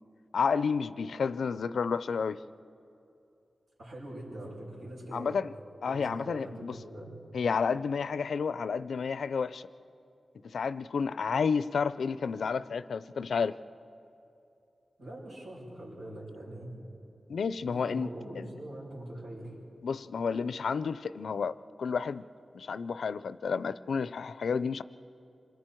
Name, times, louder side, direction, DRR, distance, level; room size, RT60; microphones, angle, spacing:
voice 1, 0.3-2.4 5.1-5.5 5.8-6.8 7.3-9.6 10.4-13.6 17.3-18.1 18.4-18.5 19.8-22.2 22.5-24.8, left 5 dB, 90° left, 15 dB, 0.5 m, -31 dB
voice 2, 3.8-5.4 5.8-7.1 15.0-16.8 17.6-19.6, right 1 dB, 80° right, -5 dB, 7.7 m, -43 dB
27.0 x 26.5 x 4.5 m, 2.7 s
wide cardioid pair, 160°, 0 cm